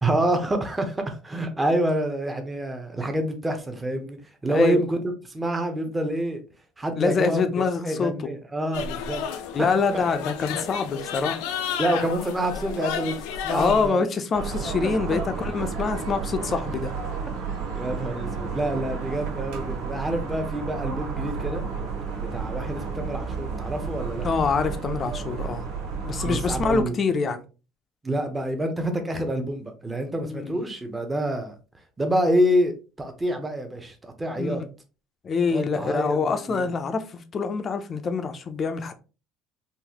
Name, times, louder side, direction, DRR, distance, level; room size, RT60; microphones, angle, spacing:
voice 1, 0.0-5.0 5.2-6.4 6.8-7.4 7.8-9.2 11.8-14.1 17.5-21.6 22.1-24.3 26.2-26.9 28.0-31.5 32.0-32.7 33.0-34.6 35.5-36.7, right 1 dB, 10° right, 0.7 m, -27 dB
voice 2, 4.5-4.9 6.9-8.3 9.5-11.4 13.5-16.9 24.2-25.6 26.1-27.4 30.2-30.6 34.3-34.6 35.2-38.9, left 5 dB, 30° left, 0.5 m, -25 dB
sound 1, 8.7-13.9, left 8 dB, 85° left, 0.5 m, -32 dB
sound 2, 14.3-26.8, right 5 dB, 80° right, 1.4 m, -32 dB
3.9 x 2.6 x 2.9 m
cardioid pair, 145°, 0 cm